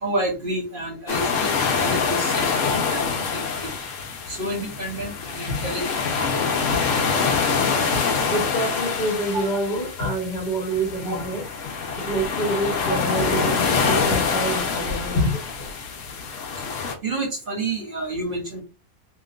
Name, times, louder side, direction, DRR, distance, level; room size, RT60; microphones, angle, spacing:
voice 1, 0.0-3.0 3.3-3.7 4.3-6.6 11.0-11.2 17.0-18.6, right 1 dB, 40° right, 1.0 m, -30 dB
sound 1, 1.1-17.0, left 5 dB, 60° left, 0.9 m, -25 dB
voice 2, 8.3-11.4 12.0-15.7, right 1 dB, 35° left, 1.0 m, -27 dB
3.0 x 2.9 x 2.4 m
omnidirectional pair, 1.6 m